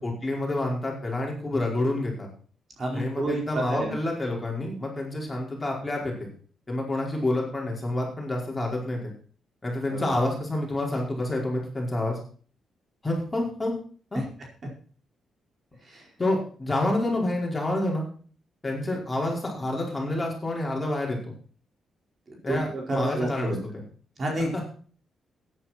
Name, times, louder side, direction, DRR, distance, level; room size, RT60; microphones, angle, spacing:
voice 1, 0.0-2.3 2.9-6.3 6.7-9.1 9.6-12.2 13.0-13.7 14.1-14.2 16.2-18.0 18.6-21.2 22.4-23.6 24.5-24.6, left 1 dB, 20° left, -2 dB, 5.0 m, -28 dB
voice 2, 2.8-4.0 9.9-10.2 14.1-14.2 15.9-16.0 22.5-23.6 24.2-24.7, right 1 dB, 40° right, 0 dB, 4.7 m, -29 dB
13.5 x 10.0 x 4.4 m, 0.43 s
cardioid pair, 110°, 0 cm